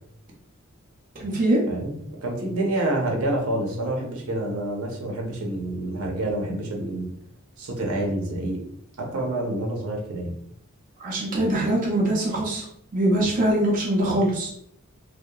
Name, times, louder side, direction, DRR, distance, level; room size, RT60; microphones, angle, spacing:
voice 1, 1.2-1.6 11.0-12.7 12.9-14.5, right 1 dB, 40° right, -3 dB, 0.5 m, -22 dB
voice 2, 1.7-7.1 7.6-8.6 9.0-10.3, right 1 dB, 80° right, 0 dB, 0.7 m, -28 dB
2.8 x 2.1 x 2.2 m, 0.71 s
head